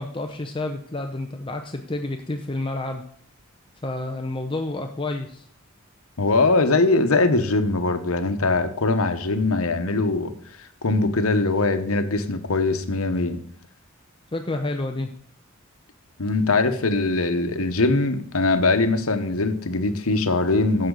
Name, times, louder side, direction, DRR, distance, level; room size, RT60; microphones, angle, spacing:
voice 1, 0.0-3.1 3.8-5.4 14.3-15.1, left 2 dB, 25° left, 5 dB, 0.7 m, -29 dB
voice 2, 6.2-10.3 10.8-13.4 16.2-20.9, left 3 dB, 85° left, 8 dB, 1.1 m, -21 dB
13.0 x 7.8 x 3.9 m, 0.62 s
head